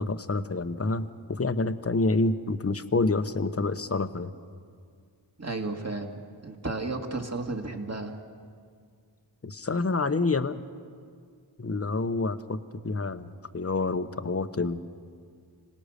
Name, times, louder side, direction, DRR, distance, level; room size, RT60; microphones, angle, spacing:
voice 1, 0.0-4.3 9.4-10.6 11.6-14.8, left 3 dB, 30° left, 11 dB, 1.0 m, -28 dB
voice 2, 5.4-8.2, right 3 dB, 30° right, 3 dB, 2.3 m, -33 dB
26.0 x 18.0 x 6.7 m, 2.1 s
cardioid pair, 45°, 47 cm